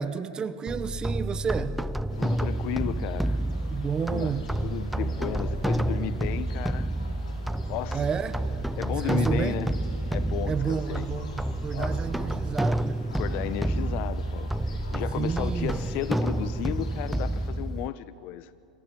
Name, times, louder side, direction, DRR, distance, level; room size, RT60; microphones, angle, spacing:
voice 1, 0.0-1.7 3.7-4.5 7.9-8.5 8.9-9.6 10.5-13.1 15.2-15.8, right 6 dB, 20° right, 13 dB, 1.0 m, -31 dB
sound 1, 0.7-17.9, right 1 dB, ahead, 0.5 m, -29 dB
sound 2, 2.1-17.5, left 2 dB, 85° left, 5.5 m, -46 dB
voice 2, 2.2-3.4 4.0-4.3 4.6-6.9 7.7-8.0 8.8-9.7 10.1-11.1 11.7-12.0 13.2-18.5, left 13 dB, 50° left, 16 dB, 0.9 m, -34 dB
25.0 x 14.5 x 9.8 m, 2.5 s
hypercardioid pair, 120°, 4 cm